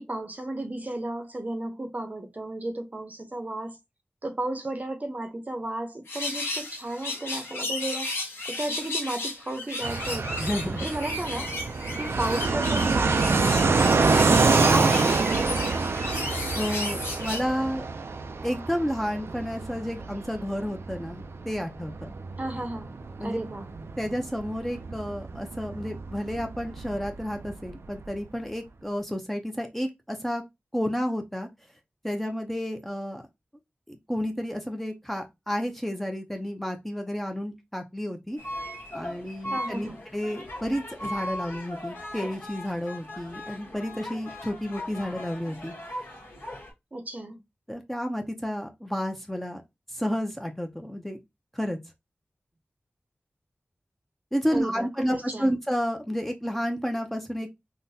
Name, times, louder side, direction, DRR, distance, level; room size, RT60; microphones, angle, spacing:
voice 1, 0.0-3.8 4.2-10.4 10.8-11.6 12.0-15.5 22.4-22.9 23.2-23.7 39.5-40.0 46.9-47.4 54.5-55.6, right 1 dB, 40° right, 0.6 m, -34 dB
sound 1, 6.1-17.4, left 2 dB, 85° left, 1.0 m, -34 dB
Fixed-wing aircraft airplane, 9.8-28.2, right 4 dB, 75° right, 0.3 m, -27 dB
voice 2, 10.4-10.9 16.5-17.8 18.4-22.1 23.2-23.4 24.0-30.4 30.7-31.5 32.0-33.2 33.9-38.4 38.9-45.7 47.7-49.6 49.9-51.2 51.5-51.8 54.3-57.5, equal, 5° left, 0.6 m, -31 dB
sound 2, 38.4-46.7, left 1 dB, 65° left, 1.1 m, -38 dB
3.8 x 2.1 x 2.7 m
wide cardioid pair, 55°, 4 cm